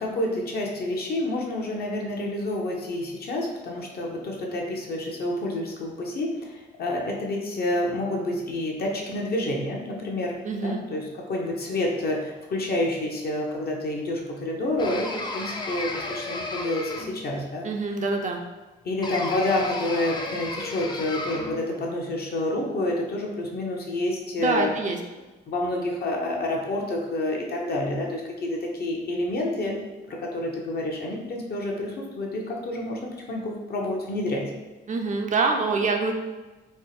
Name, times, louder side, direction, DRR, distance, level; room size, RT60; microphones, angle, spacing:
voice 1, 0.0-10.3 10.6-17.7 18.8-24.7 25.5-29.8 30.1-34.5, left 1 dB, 50° left, 0 dB, 0.8 m, -28 dB
voice 2, 10.4-10.8 17.6-18.4 24.4-25.0 34.9-36.1, right 4 dB, 40° right, 3 dB, 0.4 m, -25 dB
sound 1, 14.8-17.3 19.0-21.6, left 2 dB, 20° left, 0.4 m, -33 dB
4.2 x 2.0 x 3.2 m, 1.2 s
cardioid pair, 90°, 20 cm